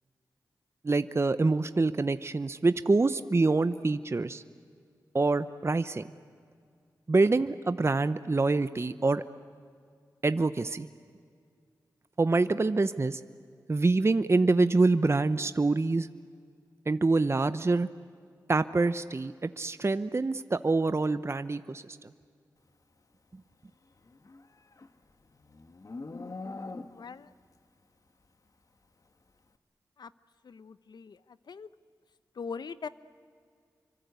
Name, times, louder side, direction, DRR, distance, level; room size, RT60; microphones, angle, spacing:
voice 1, 0.8-4.4 5.1-6.0 7.1-9.2 10.2-10.9 12.2-13.2 13.7-16.1 16.9-17.9 18.5-21.8, right 3 dB, 35° right, 12 dB, 0.8 m, -26 dB
Livestock farm animals working animals, 24.0-27.3, left 3 dB, 50° left, 1.5 m, -43 dB
voice 2, 26.9-27.3 30.0-30.1 30.4-31.7 32.4-32.9, left 5 dB, 75° left, 15 dB, 0.8 m, -41 dB
28.0 x 25.0 x 8.2 m, 2.2 s
cardioid pair, 45°, 7 cm